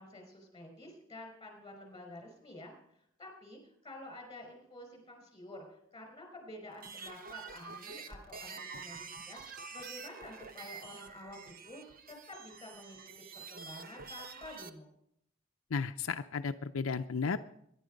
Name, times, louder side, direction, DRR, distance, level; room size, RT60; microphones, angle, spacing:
voice 1, 0.0-9.4 9.7-13.0 13.3-14.9, left 1 dB, 20° left, 4 dB, 5.0 m, -50 dB
sound 1, 6.7-14.7, right 5 dB, 45° right, 1.1 m, -47 dB
voice 2, 15.7-17.4, left 5 dB, 75° left, 7 dB, 0.6 m, -34 dB
23.0 x 11.0 x 5.2 m, 0.76 s
head